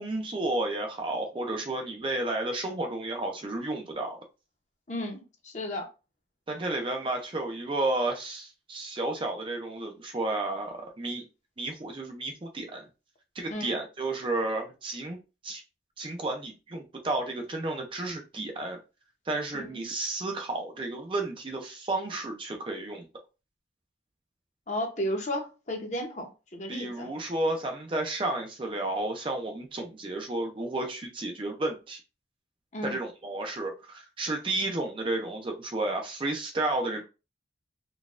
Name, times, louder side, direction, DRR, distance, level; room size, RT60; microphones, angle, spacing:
voice 1, 0.0-4.2 6.5-11.2 11.6-12.9 13.4-15.2 15.4-15.6 16.0-18.8 19.3-23.1 26.7-32.0 32.8-37.0, right 2 dB, 25° right, 0.4 m, -32 dB
voice 2, 4.9-5.9 13.5-13.7 19.5-19.9 24.7-27.1 32.7-33.0, left 1 dB, 40° left, 0.8 m, -34 dB
3.9 x 2.3 x 2.4 m
head